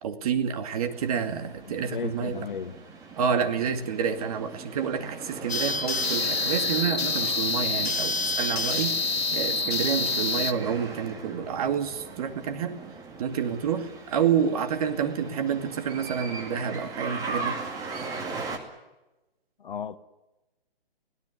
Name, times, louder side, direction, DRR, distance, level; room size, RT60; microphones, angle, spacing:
voice 1, 0.0-2.4 3.2-12.8 13.2-18.3, right 7 dB, 35° right, 2.3 m, -29 dB
sound 1, 0.7-18.6, right 4 dB, 10° right, 2.2 m, -39 dB
voice 2, 1.7-2.8 19.6-20.0, left 7 dB, 55° left, 1.4 m, -35 dB
sound 2, 5.5-10.5, left 3 dB, 90° left, 1.7 m, -27 dB
23.5 x 17.5 x 9.9 m
hypercardioid pair, 155°, 30 cm